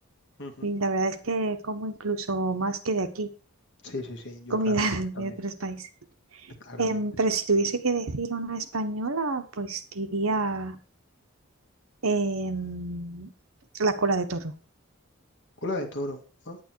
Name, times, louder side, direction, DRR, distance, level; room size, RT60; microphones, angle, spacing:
voice 1, 0.6-3.3 4.5-5.9 6.8-10.8 12.0-13.3 13.7-14.5, right 3 dB, 85° right, 9 dB, 1.2 m, -28 dB
voice 2, 3.8-4.8 5.2-5.3 6.6-7.0 15.6-16.2 16.5-16.6, left 2 dB, 60° left, 3 dB, 2.2 m, -35 dB
9.4 x 9.2 x 4.6 m, 0.35 s
head